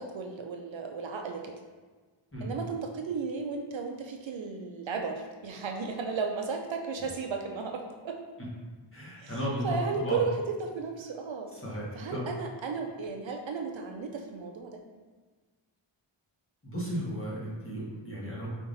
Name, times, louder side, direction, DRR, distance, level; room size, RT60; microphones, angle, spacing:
voice 1, 0.0-1.6 2.4-8.2 9.2-11.5 11.9-14.8, right 4 dB, 65° right, 3 dB, 0.5 m, -34 dB
voice 2, 8.9-10.2 11.6-11.8 12.1-12.2 16.6-18.5, equal, 25° left, -6 dB, 1.4 m, -34 dB
4.6 x 3.6 x 2.6 m, 1.4 s
wide cardioid pair, 70°, 50 cm